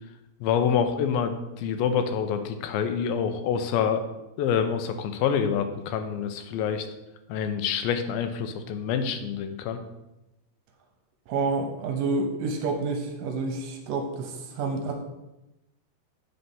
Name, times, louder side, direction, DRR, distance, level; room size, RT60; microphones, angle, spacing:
voice 1, 0.4-4.0 4.4-6.9 7.3-9.8, left 7 dB, 85° left, 7 dB, 2.4 m, -26 dB
voice 2, 11.3-15.0, right 3 dB, 75° right, 3 dB, 2.2 m, -29 dB
7.8 x 4.2 x 5.5 m, 0.97 s
omnidirectional pair, 4.2 m